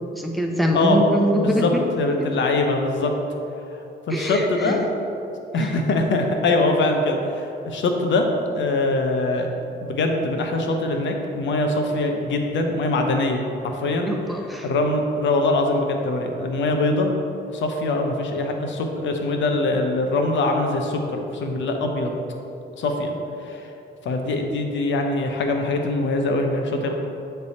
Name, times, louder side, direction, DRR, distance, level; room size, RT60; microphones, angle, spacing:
voice 1, 0.1-1.9 2.2-2.6 4.1-4.9 5.5-5.7 14.0-14.7, equal, ahead, 1 dB, 0.8 m, -24 dB
voice 2, 2.0-3.1 4.1-4.8 5.5-8.2 8.5-9.5 9.8-14.1 14.6-17.1 17.5-22.1 22.8-23.2 23.4-23.7 24.0-26.9, left 2 dB, 70° left, 3 dB, 0.8 m, -23 dB
8.1 x 3.4 x 4.2 m, 2.8 s
cardioid pair, 90°, 20 cm